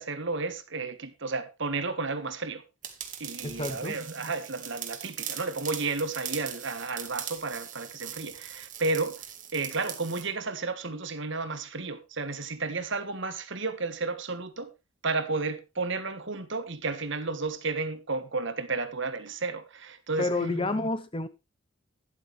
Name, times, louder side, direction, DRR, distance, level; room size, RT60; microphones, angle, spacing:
voice 1, 0.0-2.6 3.2-9.1 9.5-14.7 15.0-20.9, right 3 dB, 55° right, 1.4 m, -32 dB
sound 1, 2.8-10.3, right 9 dB, 35° right, 1.7 m, -40 dB
voice 2, 3.4-4.0 20.2-21.3, left 2 dB, 25° left, 0.8 m, -29 dB
12.5 x 10.5 x 3.2 m
head